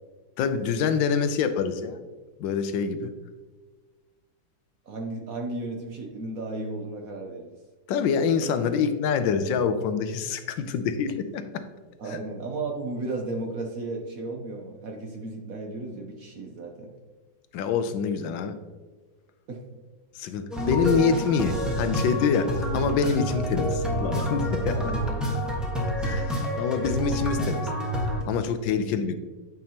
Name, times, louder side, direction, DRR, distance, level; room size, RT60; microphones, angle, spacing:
voice 1, 0.4-2.0 2.4-3.1 7.9-11.6 12.1-12.2 17.5-18.5 20.1-24.7 26.0-27.6 28.0-29.2, left 6 dB, 75° left, 9 dB, 1.2 m, -26 dB
voice 2, 4.8-7.6 12.0-16.9 19.5-19.6 24.7-25.4, right 2 dB, 60° right, 2 dB, 1.0 m, -34 dB
sound 1, 20.5-28.2, equal, ahead, 1.0 m, -28 dB
9.3 x 5.2 x 2.8 m, 1.4 s
omnidirectional pair, 2.1 m